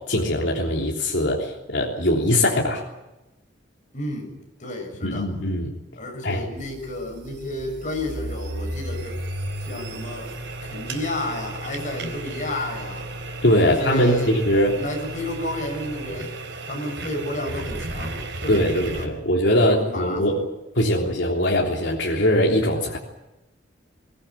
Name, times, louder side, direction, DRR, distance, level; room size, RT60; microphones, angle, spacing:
voice 1, 0.0-2.8 5.0-5.7 6.2-6.4 13.4-14.8 18.5-20.4 20.7-23.0, equal, 70° left, -2 dB, 3.3 m, -21 dB
voice 2, 3.9-5.3 6.0-9.2 9.6-10.3 10.6-13.1 13.6-14.3 14.7-16.4 16.6-19.1 19.5-20.5 20.8-21.0, left 1 dB, 45° left, 3 dB, 7.2 m, -32 dB
sound 1, 6.6-19.1, right 2 dB, 70° right, 3.9 m, -34 dB
22.0 x 18.5 x 9.7 m, 0.98 s
head